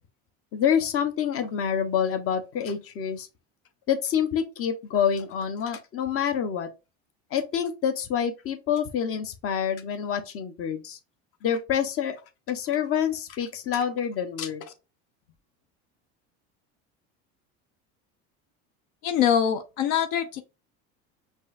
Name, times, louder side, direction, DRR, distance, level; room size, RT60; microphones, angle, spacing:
voice 1, 0.5-3.3 3.9-6.7 7.3-11.0 11.4-12.2 12.5-14.7, left 8 dB, 45° left, 0.8 m, -27 dB
voice 2, 19.0-20.4, left 9 dB, 75° left, 0.6 m, -23 dB
5.3 x 2.7 x 2.4 m
supercardioid pair, 120°, 33 cm